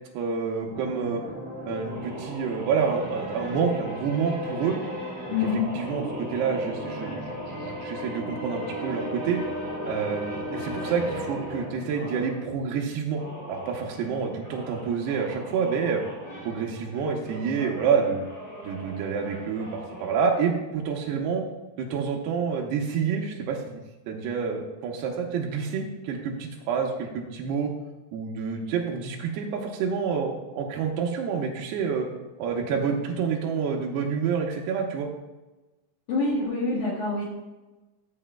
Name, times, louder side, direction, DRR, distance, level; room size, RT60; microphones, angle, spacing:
voice 1, 0.1-1.2 1.7-4.8 5.4-9.4 9.8-13.2 13.5-16.0 16.5-18.2 18.6-21.5 21.8-27.7 28.1-32.1 32.4-35.1, right 6 dB, 90° right, 0 dB, 2.3 m, -28 dB
sound 1, 0.7-12.4 13.0-20.2, equal, 35° left, 3.3 m, -37 dB
voice 2, 5.3-5.7 36.1-37.2, left 4 dB, 70° left, -5 dB, 1.8 m, -26 dB
13.5 x 7.5 x 2.2 m, 1.1 s
omnidirectional pair, 5.6 m